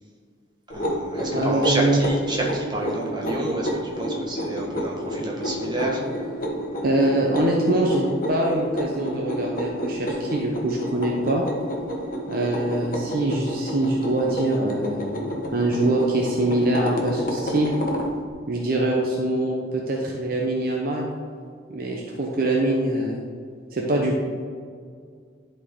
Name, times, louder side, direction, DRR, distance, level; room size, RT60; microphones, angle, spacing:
sound 1, 0.7-18.1, equal, 45° left, 1.2 m, -30 dB
voice 1, 0.7-6.0, right 2 dB, 25° right, -3 dB, 1.4 m, -29 dB
voice 2, 1.3-2.0 6.8-11.4 12.3-15.0 15.5-17.7 18.5-21.1 21.7-23.2 23.7-24.2, right 1 dB, 50° right, -1 dB, 0.8 m, -23 dB
11.0 x 4.4 x 3.7 m, 2.1 s
head